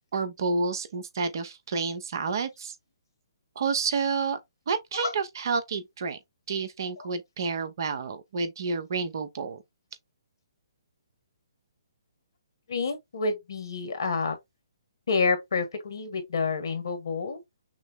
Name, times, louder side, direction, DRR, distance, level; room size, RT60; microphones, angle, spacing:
voice 1, 0.1-2.7 3.6-4.4 4.7-6.2 6.5-9.6, right 4 dB, 55° right, 0.9 m, -29 dB
voice 2, 12.7-14.4 15.1-17.4, left 4 dB, 70° left, 1.7 m, -28 dB
6.1 x 2.1 x 3.6 m
figure-of-eight pair, 135°, 2 cm